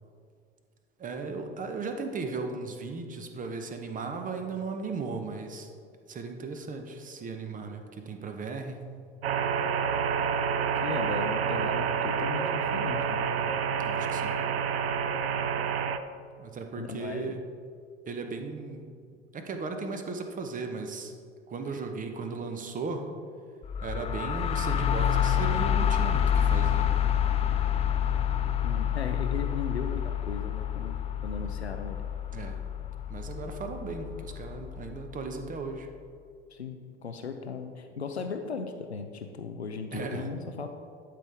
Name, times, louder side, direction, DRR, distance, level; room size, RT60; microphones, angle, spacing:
voice 1, 1.0-5.7 6.1-8.8 13.8-14.4 16.4-17.4 18.1-18.9 19.3-21.1 21.5-23.1 23.8-27.0 32.3-32.6 33.1-35.9 39.9-40.3, right 4 dB, 25° right, 6 dB, 0.9 m, -36 dB
sound 1, 9.2-16.0, right 7 dB, 70° right, 0.5 m, -28 dB
voice 2, 10.8-13.3 16.8-17.4 28.6-32.0 36.5-40.7, left 5 dB, 85° left, 6 dB, 0.5 m, -37 dB
sound 2, 23.6-35.3, left 9 dB, 20° left, 0.4 m, -28 dB
12.0 x 5.2 x 3.5 m, 2.2 s
figure-of-eight pair, 70°, 32 cm